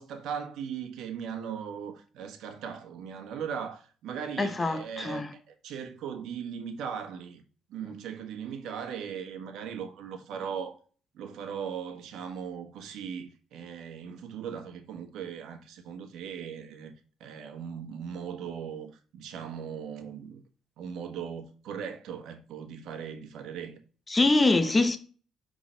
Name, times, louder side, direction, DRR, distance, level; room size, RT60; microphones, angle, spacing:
voice 1, 0.0-5.2 5.6-7.4 7.7-10.8 11.1-16.9 17.2-20.4 20.8-23.8, right 7 dB, 75° right, 1.3 m, -38 dB
voice 2, 4.4-5.3 24.1-25.0, left 2 dB, 20° left, 0.9 m, -24 dB
5.6 x 3.8 x 5.1 m
cardioid pair, 110°, 0 cm